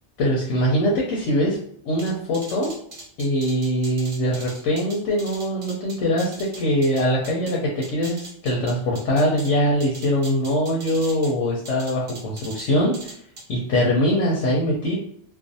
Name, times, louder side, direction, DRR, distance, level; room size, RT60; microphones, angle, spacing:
voice 1, 0.2-1.6 1.9-2.7 3.2-13.1 13.5-15.0, equal, 90° left, -3 dB, 0.9 m, -22 dB
sound 1, 2.0-7.5 7.8-9.5 9.8-11.3 11.6-12.7 12.9-13.4, right 2 dB, 40° right, 0.7 m, -40 dB
2.4 x 2.1 x 2.6 m, 0.64 s
omnidirectional pair, 1.2 m